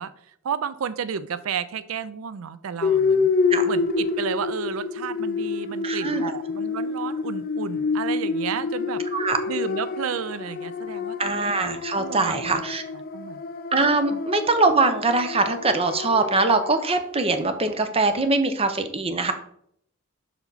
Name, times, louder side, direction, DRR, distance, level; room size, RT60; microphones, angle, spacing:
voice 1, 0.0-3.3 3.7-9.0 9.5-11.4 11.9-12.6 13.1-13.4 14.1-14.2, right 7 dB, 90° right, 15 dB, 0.4 m, -32 dB
sound 1, 2.8-17.0, left 4 dB, 45° left, 0.5 m, -28 dB
voice 2, 5.8-6.3 9.1-9.4 11.2-12.8 13.7-19.3, right 3 dB, 30° right, 8 dB, 0.8 m, -22 dB
6.9 x 5.9 x 4.0 m, 0.68 s
head